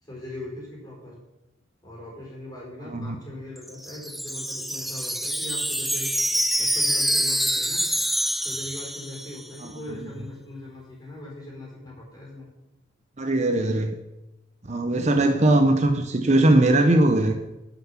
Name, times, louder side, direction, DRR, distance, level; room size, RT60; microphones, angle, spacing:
voice 1, 0.0-1.2 1.8-6.1 6.6-7.9 8.4-12.5 15.1-15.5, left 1 dB, 20° left, -3 dB, 4.5 m, -40 dB
voice 2, 2.8-3.1 9.6-10.1 13.2-14.0 14.6-17.3, right 1 dB, 35° right, 6 dB, 0.7 m, -20 dB
Wind chime, 3.6-9.6, equal, ahead, 0.4 m, -26 dB
11.5 x 5.9 x 7.2 m, 0.98 s
head